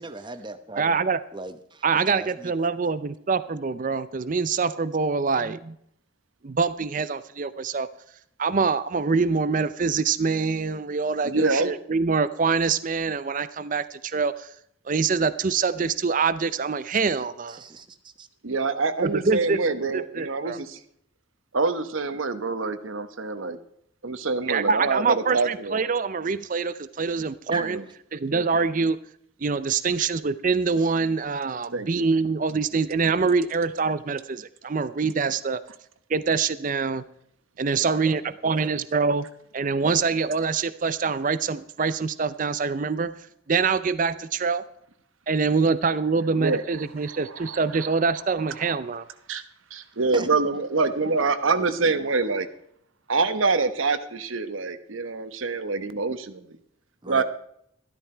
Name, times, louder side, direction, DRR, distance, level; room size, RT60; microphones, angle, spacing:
voice 1, 0.0-1.0 1.3-1.8 2.1-2.5 17.5-18.3 27.5-27.7 37.7-38.8 39.8-39.9 50.1-50.3 57.0-57.2, right 2 dB, 25° right, 10 dB, 0.9 m, -38 dB
voice 2, 0.8-1.2 1.8-5.8 6.4-7.9 8.4-14.5 14.9-17.6 19.0-19.6 19.9-20.6 24.5-27.8 28.1-29.0 29.4-35.6 36.1-37.0 37.6-39.3 39.5-43.2 43.5-44.6 45.3-49.0, right 4 dB, 40° right, 14 dB, 0.5 m, -25 dB
voice 3, 11.2-11.7 18.4-20.8 21.5-23.6 24.0-25.8 27.7-27.8 28.3-28.4 31.7-32.0 46.4-46.6 47.1-47.6 49.3-49.4 49.7-52.5 53.1-56.6 57.1-57.2, right 3 dB, 85° right, 11 dB, 1.1 m, -26 dB
13.0 x 12.5 x 4.5 m, 0.71 s
head